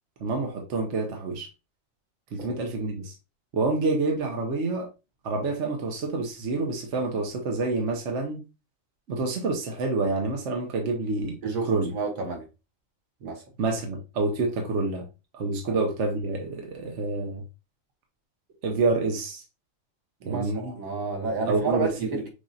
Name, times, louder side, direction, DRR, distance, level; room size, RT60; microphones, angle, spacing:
voice 1, 0.2-1.5 2.3-3.1 3.5-4.9 5.2-8.4 9.1-11.4 11.6-11.9 13.6-15.1 15.3-17.4 18.6-19.4 20.3-20.7 21.5-22.2, right 3 dB, 65° right, 1.1 m, -27 dB
voice 2, 11.4-12.4 13.2-13.4 15.6-15.8 20.2-22.3, right 3 dB, 85° right, 1.5 m, -30 dB
6.3 x 2.6 x 2.6 m
omnidirectional pair, 1.4 m